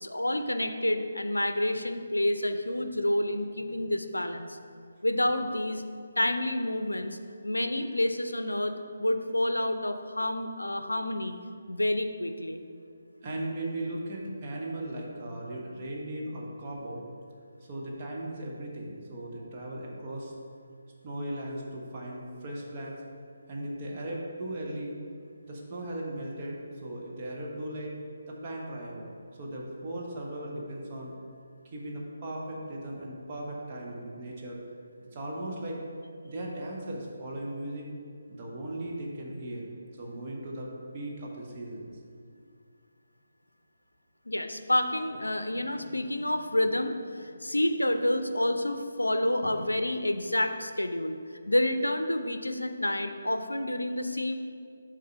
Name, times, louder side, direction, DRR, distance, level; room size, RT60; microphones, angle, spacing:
voice 1, 0.0-4.6 5.0-5.8 6.2-8.7 9.0-11.4 11.7-12.6 44.3-51.2 51.5-54.3, left 1 dB, 80° left, 8 dB, 0.5 m, -29 dB
voice 2, 13.2-17.0 17.7-20.3 21.0-23.0 23.5-25.0 25.4-28.0 28.3-29.1 29.4-31.1 31.7-34.6 35.1-35.8 36.2-37.9 38.3-39.7 40.0-41.9, right 1 dB, 30° right, -3 dB, 1.1 m, -37 dB
6.6 x 3.7 x 5.4 m, 2.2 s
figure-of-eight pair, 145°, 0 cm